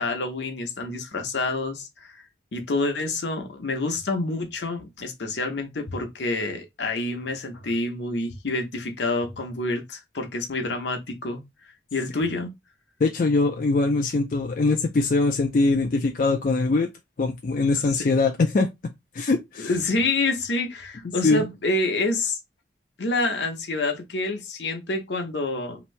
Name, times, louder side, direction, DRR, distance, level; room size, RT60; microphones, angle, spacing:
voice 1, 0.0-2.2 2.5-11.4 11.9-12.5 17.9-18.1 19.6-22.4 23.0-25.8, left 2 dB, 75° left, 0.8 m, -27 dB
voice 2, 13.0-16.9 17.2-18.7 19.1-19.7 21.2-21.4, left 3 dB, 50° left, 0.4 m, -22 dB
2.9 x 2.6 x 3.1 m
head